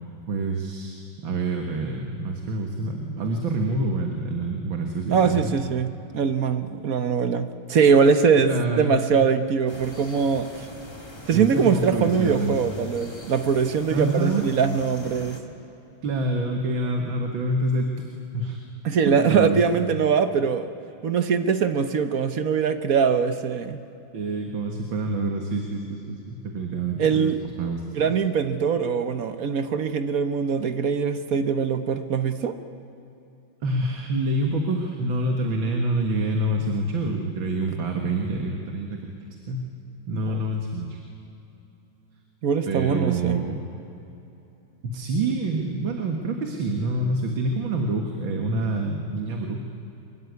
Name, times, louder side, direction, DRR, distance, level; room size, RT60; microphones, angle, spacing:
voice 1, 0.3-5.5 8.4-9.0 11.3-12.6 13.9-14.5 16.0-18.1 18.3-18.6 19.1-19.6 24.1-28.1 33.6-39.0 39.5-39.7 40.1-41.0 42.7-43.7 44.8-49.6, right 2 dB, 75° right, 3 dB, 2.5 m, -27 dB
voice 2, 5.1-10.7 11.3-15.4 18.8-20.7 21.0-23.8 27.0-27.4 27.9-32.6 40.3-40.4 42.4-43.4, right 6 dB, 50° right, 10 dB, 1.3 m, -22 dB
sound 1, 9.7-15.4, left 1 dB, 15° left, 1.9 m, -42 dB
24.0 x 22.0 x 9.6 m, 2.9 s
omnidirectional pair, 2.1 m